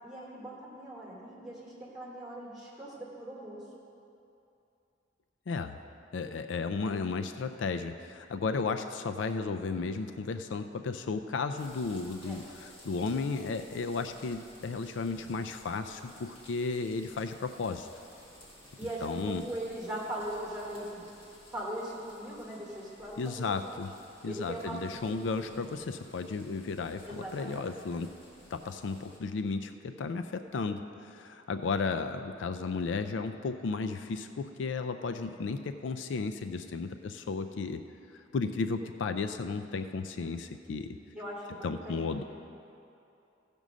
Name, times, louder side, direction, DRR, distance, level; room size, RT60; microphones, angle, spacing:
voice 1, 0.0-3.6 12.2-12.4 18.8-21.0 21.5-23.8 24.3-24.8 27.0-27.6 41.1-42.2, right 1 dB, 5° right, -6 dB, 3.0 m, -40 dB
voice 2, 5.5-5.8 6.1-17.9 19.0-19.4 23.2-23.9 24.2-28.1 28.5-37.8 38.1-40.9 41.6-42.2, left 4 dB, 70° left, 8 dB, 0.4 m, -34 dB
sound 1, 11.6-29.2, left 1 dB, 30° left, 1.9 m, -56 dB
15.5 x 5.3 x 6.2 m, 2.7 s
head